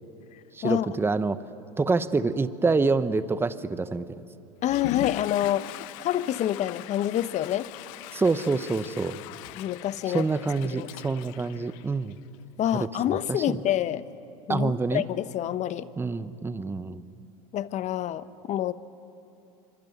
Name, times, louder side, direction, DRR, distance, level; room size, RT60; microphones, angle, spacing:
voice 1, 0.5-1.4 1.8-4.1 8.1-9.2 10.1-12.1 12.8-12.9 13.3-13.6 14.5-15.0 16.0-17.0, right 3 dB, 10° right, 13 dB, 1.0 m, -26 dB
Water / Toilet flush, 4.6-12.3, left 19 dB, 65° left, 0.6 m, -40 dB
voice 2, 4.6-5.7 6.0-7.7 9.6-10.3 10.7-10.9 12.6-14.0 14.5-15.9 17.5-18.7, left 12 dB, 40° left, 15 dB, 1.0 m, -27 dB
25.5 x 24.5 x 9.4 m, 2.8 s
hypercardioid pair, 105°, 19 cm